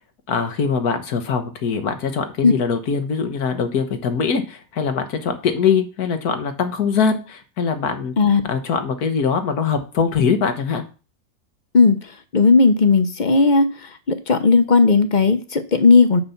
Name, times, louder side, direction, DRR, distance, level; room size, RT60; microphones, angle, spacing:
voice 1, 0.3-8.1 8.5-10.8, left 6 dB, 85° left, 8 dB, 1.7 m, -22 dB
voice 2, 12.3-13.7 14.1-16.2, left 4 dB, 40° left, 9 dB, 0.8 m, -15 dB
6.8 x 5.7 x 7.1 m, 0.35 s
omnidirectional pair, 1.6 m